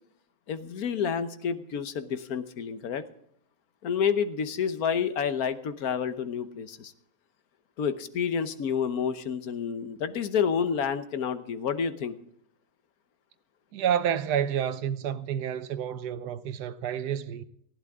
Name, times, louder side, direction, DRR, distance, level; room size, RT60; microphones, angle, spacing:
voice 1, 0.5-3.0 3.8-6.9 7.8-12.2, left 7 dB, 65° left, 1.5 m, -29 dB
voice 2, 13.7-17.4, right 9 dB, 80° right, 1.4 m, -29 dB
19.0 x 14.5 x 3.6 m
omnidirectional pair, 1.7 m